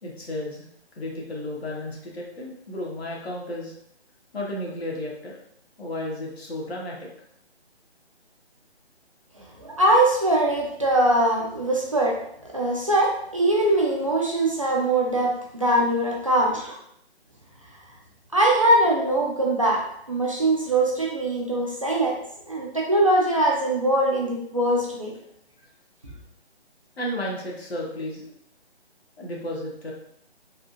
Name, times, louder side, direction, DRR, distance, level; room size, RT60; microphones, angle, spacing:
voice 1, 0.0-0.7 1.0-3.7 4.3-5.3 5.8-7.1 27.0-28.3 29.2-29.9, left 1 dB, 70° left, -2 dB, 1.2 m, -33 dB
voice 2, 9.6-12.2 12.5-16.8 18.3-19.8 20.1-22.2 22.5-25.1, right 1 dB, 30° right, -3 dB, 0.4 m, -22 dB
3.7 x 2.4 x 2.5 m, 0.71 s
figure-of-eight pair, 155°, 33 cm